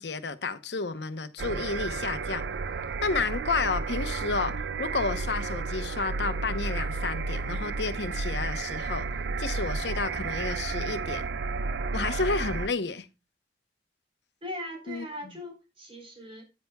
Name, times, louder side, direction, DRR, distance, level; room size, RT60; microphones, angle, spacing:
voice 1, 0.0-2.5 3.0-9.1 9.4-11.3 11.9-13.1 14.9-15.1, left 4 dB, 75° left, 0.9 m, -31 dB
sound 1, 1.4-12.7, right 4 dB, 75° right, 0.4 m, -32 dB
voice 2, 14.4-16.4, left 1 dB, 30° right, 3.8 m, -39 dB
9.9 x 9.4 x 2.3 m
head